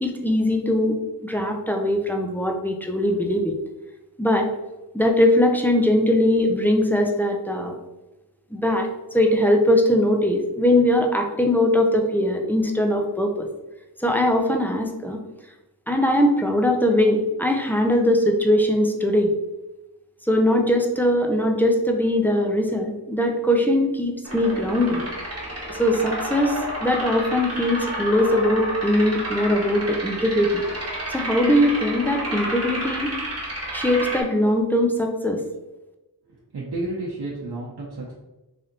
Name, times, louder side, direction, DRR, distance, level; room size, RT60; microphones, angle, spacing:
voice 1, 0.0-3.6 4.2-4.5 4.9-7.7 8.5-8.9 9.1-13.5 14.0-15.2 15.9-19.3 20.3-25.0 25.7-30.6 31.1-33.1 33.7-35.4, left 1 dB, 5° left, 2 dB, 0.6 m, -21 dB
sound 1, 24.2-34.2, right 1 dB, 40° right, 1.3 m, -31 dB
voice 2, 36.5-38.1, right 2 dB, 85° right, -5 dB, 0.8 m, -31 dB
3.4 x 2.7 x 3.8 m, 1.0 s
wide cardioid pair, 55°, 38 cm